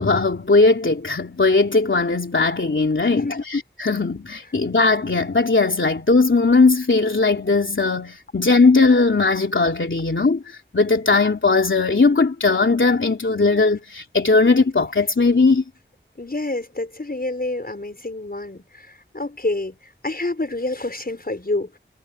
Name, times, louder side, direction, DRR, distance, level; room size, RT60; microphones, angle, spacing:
voice 1, 0.0-15.6, left 3 dB, 80° left, 3.1 m, -18 dB
voice 2, 3.1-3.4 16.2-18.9 19.1-19.8 20.0-21.8, left 2 dB, 50° left, 5.5 m, -27 dB
wide cardioid pair, 50°, 20 cm